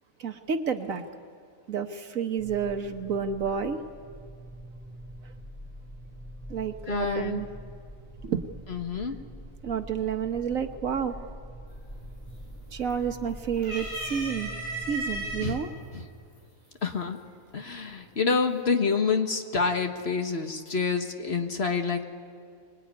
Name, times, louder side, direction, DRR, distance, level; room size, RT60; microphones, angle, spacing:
voice 1, 0.2-1.0 1.7-3.8 6.5-7.5 8.2-8.5 9.6-11.2 12.7-14.5 14.9-15.7, right 7 dB, 70° right, 7 dB, 1.7 m, -30 dB
sound 1, 2.4-15.6, right 1 dB, 20° left, 1.9 m, -44 dB
voice 2, 6.9-7.4 8.7-9.2 15.4-15.6 15.9-16.0 16.8-17.2 17.5-22.0, left 5 dB, 50° left, 5 dB, 1.7 m, -27 dB
sound 2, 11.7-12.1 12.5-13.2 13.6-15.5 16.4-16.5 17.7-18.2, right 1 dB, 80° left, 8.3 m, -35 dB
25.5 x 21.0 x 9.6 m, 2.2 s
omnidirectional pair, 1.5 m